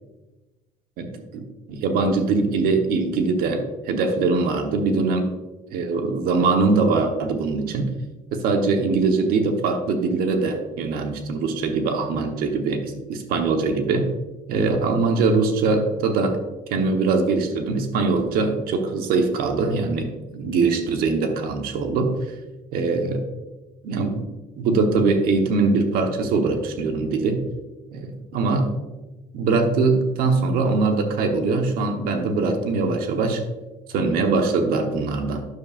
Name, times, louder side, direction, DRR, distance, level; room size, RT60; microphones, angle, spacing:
voice 1, 1.0-5.3 5.7-7.9 8.3-14.1 14.5-16.4 16.7-22.2 22.7-23.2 23.8-24.3 24.6-27.4 27.9-28.7 29.3-33.4 33.9-35.5, right 4 dB, 70° right, 5 dB, 1.1 m, -22 dB
9.5 x 6.8 x 2.5 m, 1.1 s
supercardioid pair, 90°, 16 cm